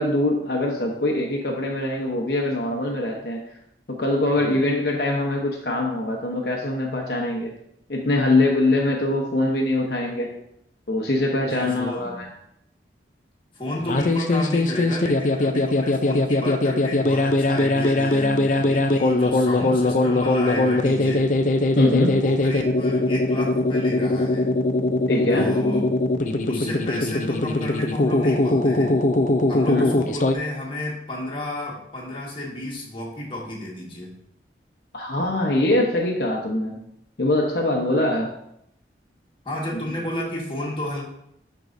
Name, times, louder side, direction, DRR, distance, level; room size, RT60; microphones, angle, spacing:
voice 1, 0.0-3.4 3.9-7.5 7.9-10.3 10.9-12.3 19.6-19.7 21.8-22.2 25.1-25.5 29.7-29.8 34.9-36.8 37.2-38.3 39.7-39.8, left 2 dB, 65° left, -1 dB, 0.9 m, -23 dB
voice 2, 11.4-12.2 13.5-21.3 22.1-24.6 25.3-25.9 26.5-29.0 29.5-34.1 39.4-41.0, left 1 dB, 30° left, -3 dB, 1.6 m, -31 dB
sound 1, 13.8-30.3, left 2 dB, 45° left, 0.5 m, -21 dB
11.5 x 4.7 x 2.6 m, 0.76 s
head